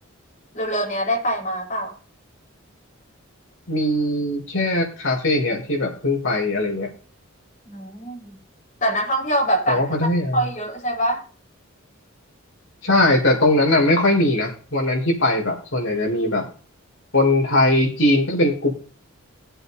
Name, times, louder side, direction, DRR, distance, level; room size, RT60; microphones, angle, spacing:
voice 1, 0.5-2.0 7.7-8.4 8.8-9.9 10.3-11.2, right 1 dB, 35° left, -2 dB, 4.4 m, -24 dB
voice 2, 3.7-6.9 9.7-10.5 12.8-16.5 17.1-18.7, left 1 dB, 65° left, -1 dB, 4.7 m, -20 dB
18.0 x 8.0 x 4.2 m, 0.39 s
head